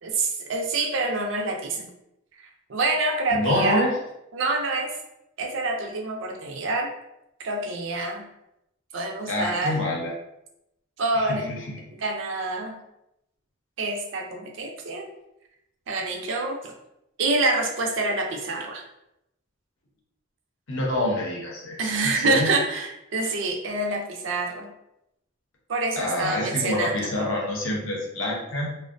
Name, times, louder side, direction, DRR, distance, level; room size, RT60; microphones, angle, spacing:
voice 1, 0.0-1.9 2.7-3.8 4.3-4.9 5.4-6.9 7.4-8.3 8.9-9.8 11.0-11.5 11.9-12.8 13.8-15.1 15.9-16.7 17.2-18.8 21.8-24.7 25.7-27.1, right 2 dB, 70° right, 2 dB, 0.5 m, -26 dB
voice 2, 3.3-3.9 9.3-10.1 11.1-11.8 20.7-22.5 26.0-28.7, left 1 dB, 75° left, -2 dB, 0.6 m, -27 dB
2.5 x 2.1 x 2.5 m, 0.84 s
head